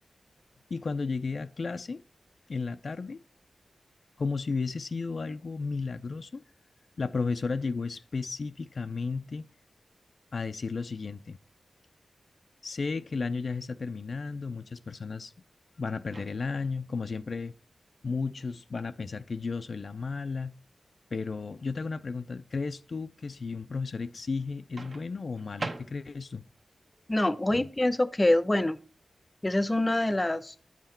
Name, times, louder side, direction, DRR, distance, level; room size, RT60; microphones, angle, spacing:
voice 1, 0.7-2.0 2.5-3.2 4.2-6.4 7.0-9.5 10.3-11.4 12.6-15.3 15.8-17.5 18.0-20.6 21.1-26.4 27.5-27.7, left 4 dB, 60° left, 0.4 m, -33 dB
Microwave oven, 16.1-16.7 18.7-19.0 24.8-26.4, right 3 dB, 50° right, 0.9 m, -41 dB
voice 2, 27.1-28.8 29.4-30.5, left 1 dB, 25° left, 0.6 m, -25 dB
8.9 x 5.8 x 4.3 m
wide cardioid pair, 75°, 0 cm